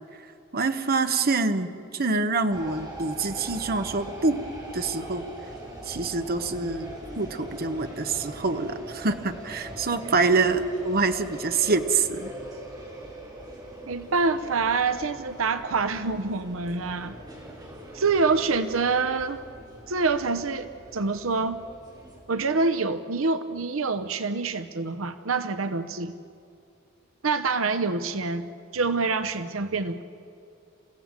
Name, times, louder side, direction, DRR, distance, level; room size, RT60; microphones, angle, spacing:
voice 1, 0.5-1.7 1.9-4.4 4.7-5.2 5.9-6.9 7.2-12.3, right 3 dB, 50° right, 9 dB, 1.1 m, -25 dB
sound 1, 2.5-22.2, right 1 dB, 20° right, 4.4 m, -42 dB
voice 2, 13.9-17.2 17.9-19.4 19.9-21.6 22.3-26.1 27.2-30.0, right 4 dB, 80° right, 11 dB, 0.8 m, -26 dB
28.5 x 16.0 x 7.6 m, 2.6 s
head